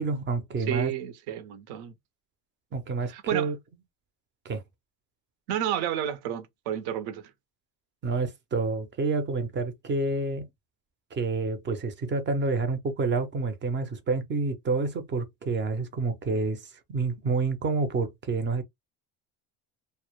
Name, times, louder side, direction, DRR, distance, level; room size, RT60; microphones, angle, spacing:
voice 1, 0.0-0.9 2.7-3.6 4.4-4.6 8.0-10.5 11.1-18.6, right 3 dB, 30° right, 0.5 m, -28 dB
voice 2, 0.7-1.9 3.1-3.5 5.5-7.3, right 10 dB, 75° right, 0.7 m, -31 dB
2.1 x 2.0 x 2.9 m
cardioid pair, 135°, 39 cm